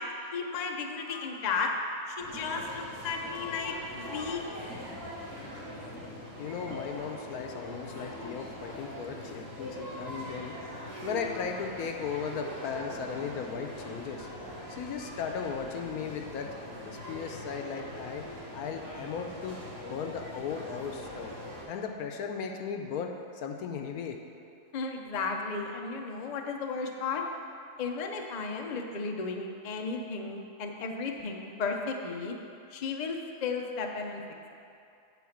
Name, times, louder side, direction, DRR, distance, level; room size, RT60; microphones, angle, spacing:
voice 1, 0.0-4.5 24.7-27.2 27.8-32.4 32.7-34.2, left 4 dB, 50° left, 2 dB, 0.5 m, -34 dB
sound 1, 2.2-21.6, equal, 80° right, 2.8 m, -42 dB
voice 2, 6.4-10.6 11.0-14.3 14.7-16.5 16.9-18.3 18.5-21.4 21.7-24.2, left 6 dB, 75° left, 4 dB, 1.1 m, -36 dB
9.2 x 4.2 x 7.1 m, 2.6 s
omnidirectional pair, 1.6 m